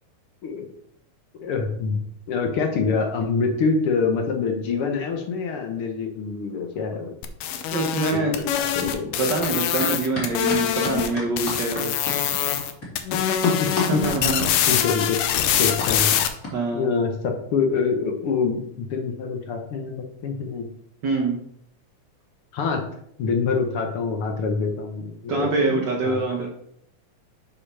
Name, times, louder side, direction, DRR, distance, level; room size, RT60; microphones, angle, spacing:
voice 1, 1.4-2.0 2.3-7.1 8.1-9.1 13.1-14.0 14.7-15.2 15.6-16.1 16.7-20.7 22.5-22.8 23.2-26.2, left 5 dB, 65° left, 3 dB, 1.4 m, -25 dB
sound 1, 7.2-11.1 11.4-12.7 13.0-16.3, left 10 dB, 85° left, 2.2 m, -24 dB
voice 2, 7.5-8.4 9.2-11.9 13.9-14.5 14.7-14.9 16.5-16.9 21.0-21.4 25.3-26.5, right 3 dB, 70° right, 0 dB, 1.0 m, -25 dB
sound 2, 9.4-9.5 9.8-16.5, left 2 dB, 30° left, 2.6 m, -32 dB
6.6 x 5.2 x 5.5 m, 0.70 s
omnidirectional pair, 3.5 m